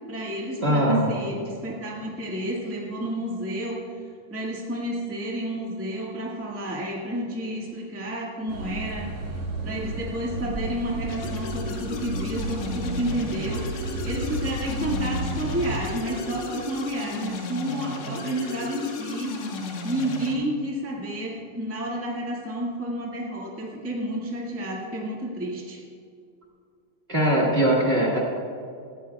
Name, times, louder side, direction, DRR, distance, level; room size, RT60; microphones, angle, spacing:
voice 1, 0.1-3.8 4.3-19.3 19.8-25.8, right 1 dB, 15° right, -4 dB, 0.5 m, -31 dB
voice 2, 0.6-1.1 27.1-28.2, right 1 dB, 30° right, -3 dB, 1.2 m, -21 dB
sound 1, 8.5-15.8, right 1 dB, 60° right, 2.6 m, -32 dB
sound 2, 11.1-20.3, left 3 dB, 65° left, 2.2 m, -35 dB
18.0 x 13.5 x 2.3 m, 2.4 s
omnidirectional pair, 3.9 m